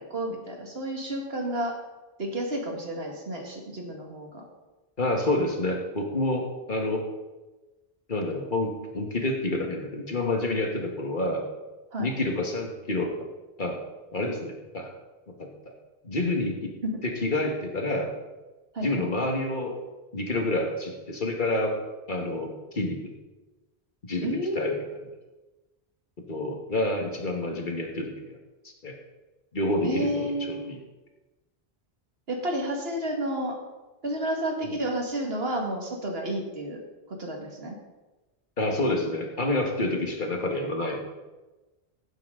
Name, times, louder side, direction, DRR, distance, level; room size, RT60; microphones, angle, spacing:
voice 1, 0.0-1.7 2.2-4.5 11.9-12.1 16.8-17.0 18.7-19.1 24.2-24.8 29.8-30.7 32.3-33.5 34.0-36.8 37.1-37.8, right 1 dB, 70° right, 1 dB, 2.1 m, -31 dB
voice 2, 5.0-7.0 8.1-11.4 12.0-13.1 13.6-13.8 14.1-14.9 15.4-15.5 16.0-16.7 17.0-18.1 18.8-19.8 20.1-21.8 22.1-23.1 24.0-24.8 26.3-28.4 28.6-28.9 29.5-30.8 34.6-34.7 38.6-41.1, left 2 dB, 50° left, 2 dB, 1.7 m, -28 dB
16.0 x 7.6 x 3.8 m, 1.1 s
omnidirectional pair, 1.1 m